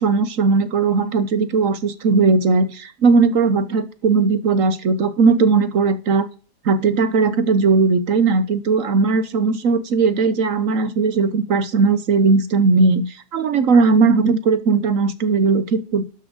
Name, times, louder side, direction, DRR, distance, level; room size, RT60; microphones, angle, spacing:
voice 1, 0.0-6.3 6.6-13.1 13.3-16.1, right 4 dB, 55° right, 12 dB, 1.2 m, -18 dB
12.0 x 6.3 x 5.1 m, 0.36 s
omnidirectional pair, 1.8 m